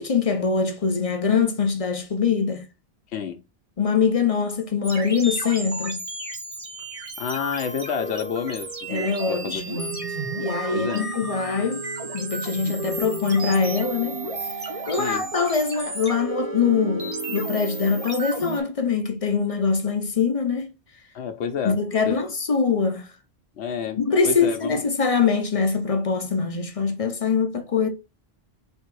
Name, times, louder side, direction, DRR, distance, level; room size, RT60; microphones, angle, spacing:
voice 1, 0.0-2.7 3.8-6.0 8.9-10.1 10.4-11.8 12.1-14.5 14.9-20.7 21.6-23.1 24.0-27.9, left 5 dB, 40° left, 0.5 m, -23 dB
sound 1, 4.8-18.6, right 2 dB, 35° right, 0.9 m, -32 dB
voice 2, 7.2-9.6 10.7-11.1 12.6-12.8 15.0-15.3 21.1-21.8 22.1-22.3 23.6-24.8, left 7 dB, 90° left, 0.9 m, -30 dB
3.5 x 2.8 x 4.5 m
omnidirectional pair, 1.1 m